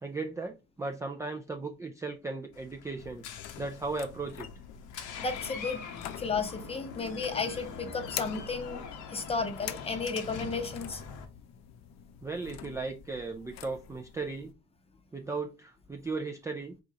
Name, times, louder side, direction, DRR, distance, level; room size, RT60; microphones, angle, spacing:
voice 1, 0.0-3.2 3.6-4.5 12.2-14.5 15.1-16.7, right 3 dB, 10° right, 0.3 m, -36 dB
Door, 2.5-11.2, left 6 dB, 85° left, 1.0 m, -43 dB
sound 1, 3.0-14.5, left 10 dB, 65° left, 0.6 m, -46 dB
voice 2, 5.2-5.8 6.2-8.8 9.1-11.0, left 4 dB, 20° left, 0.7 m, -33 dB
4.8 x 3.8 x 2.8 m
cardioid pair, 145°, 30 cm